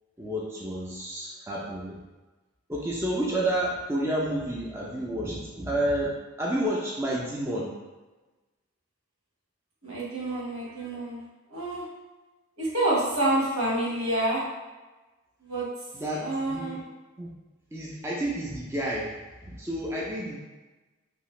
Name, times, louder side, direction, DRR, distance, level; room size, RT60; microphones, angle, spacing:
voice 1, 0.2-2.0 2.7-7.7 15.9-16.8 17.2-17.3 17.7-19.2 19.4-20.4, right 1 dB, 10° right, -5 dB, 0.3 m, -30 dB
voice 2, 9.8-11.2 11.5-11.8 12.6-14.4 15.4-15.6 16.2-16.8, right 1 dB, 85° right, -6 dB, 1.1 m, -28 dB
2.7 x 2.4 x 3.0 m, 1.2 s
head